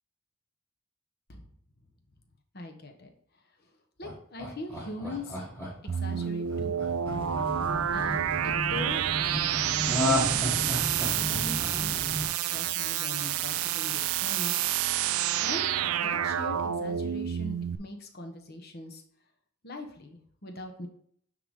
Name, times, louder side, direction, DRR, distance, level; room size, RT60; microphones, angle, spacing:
voice 1, 2.5-3.1 4.0-5.5 5.8-6.9 7.9-9.0 10.0-14.6 15.4-15.7 16.0-19.0 19.6-20.9, left 2 dB, 45° left, 4 dB, 1.2 m, -41 dB
Laughter, 4.0-8.2 9.8-12.8 13.2-13.3, left 1 dB, 10° left, 2.8 m, -32 dB
sound 1, 5.9-17.8, right 10 dB, 85° right, 0.5 m, -29 dB
sound 2, 7.1-12.3, equal, 25° right, 1.0 m, -36 dB
9.3 x 4.0 x 3.7 m, 0.64 s
head